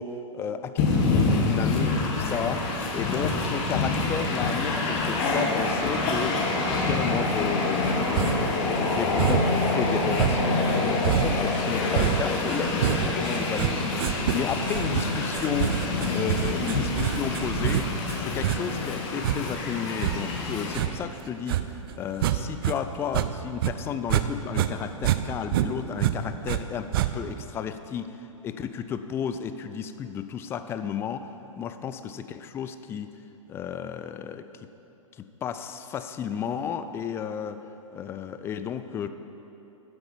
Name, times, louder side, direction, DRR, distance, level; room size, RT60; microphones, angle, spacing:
voice 1, 0.0-6.5 6.8-15.8 16.1-17.9 18.2-28.2 28.4-31.3 31.6-33.1 33.5-34.5 35.2-37.6 37.9-39.1, left 8 dB, 15° left, 10 dB, 0.4 m, -33 dB
Train, 0.8-20.8, left 3 dB, 35° left, 1.6 m, -26 dB
sound 1, 8.1-8.6 9.2-9.7 10.1-22.8 23.0-24.3 24.5-26.6 26.9-27.4, right 12 dB, 45° right, 0.5 m, -27 dB
9.7 x 7.8 x 7.2 m, 3.0 s
figure-of-eight pair, 110°, 17 cm